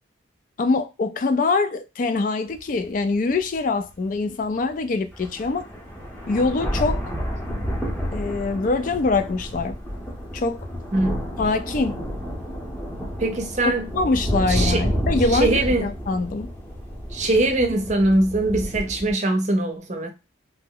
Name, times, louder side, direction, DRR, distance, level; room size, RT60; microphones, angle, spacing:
voice 1, 0.6-5.7 6.3-7.0 8.1-9.8 10.3-10.7 11.4-12.0 13.9-16.5, left 3 dB, 45° left, 0.3 m, -24 dB
sound 1, 2.6-2.7 3.3-3.4 4.7-4.8 5.1-19.1, equal, 10° left, 0.7 m, -30 dB
voice 2, 10.9-11.2 13.2-13.9 14.5-14.8 15.3-15.9 17.1-20.1, right 2 dB, 35° right, 0.6 m, -22 dB
2.8 x 2.0 x 3.7 m
head